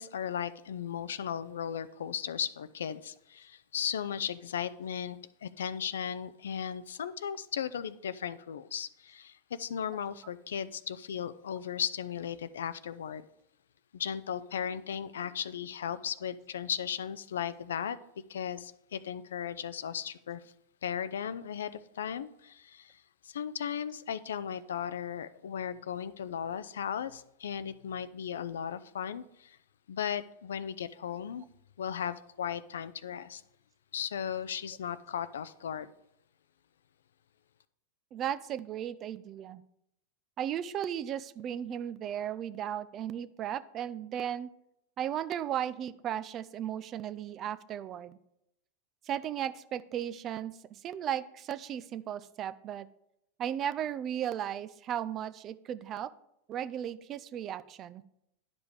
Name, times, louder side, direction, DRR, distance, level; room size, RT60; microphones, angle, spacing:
voice 1, 0.0-13.2 13.9-18.0 18.3-20.4 20.8-29.6 29.9-31.4 31.8-33.4 33.9-35.9, left 8 dB, 85° left, 0.4 m, -36 dB
voice 2, 38.1-39.6 40.4-44.5 45.0-48.2 49.1-50.6 50.8-52.9 53.4-56.1 56.5-58.0, right 10 dB, 35° right, 0.5 m, -35 dB
10.5 x 5.2 x 4.8 m
hypercardioid pair, 115°, 0 cm